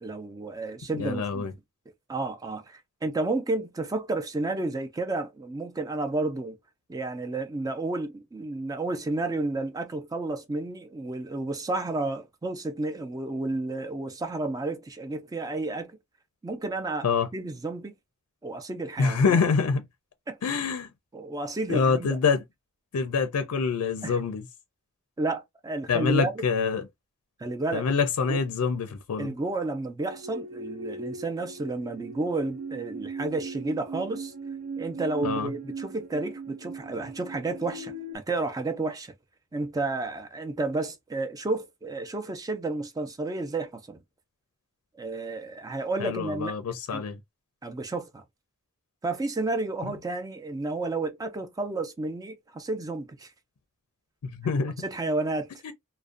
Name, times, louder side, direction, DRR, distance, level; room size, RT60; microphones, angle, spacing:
voice 1, 0.0-1.5 2.1-6.6 6.9-15.9 16.4-17.9 18.4-19.4 20.3-20.4 21.1-22.2 24.0-24.2 25.2-26.3 27.4-27.9 28.3-28.4 29.2-34.3 34.8-39.1 39.5-44.0 45.0-46.5 46.9-47.0 47.6-48.2 49.0-53.3 54.8-55.5, right 2 dB, 15° right, 0.3 m, -31 dB
voice 2, 0.9-1.5 17.0-17.3 19.0-19.8 20.4-20.9 21.7-22.4 22.9-24.4 25.9-26.9 27.7-29.3 35.2-35.5 46.0-47.2 54.2-54.7 55.6-55.7, left 5 dB, 80° left, 0.4 m, -25 dB
sound 1, 30.0-38.2, right 3 dB, 85° right, 0.5 m, -39 dB
2.5 x 2.0 x 2.4 m
head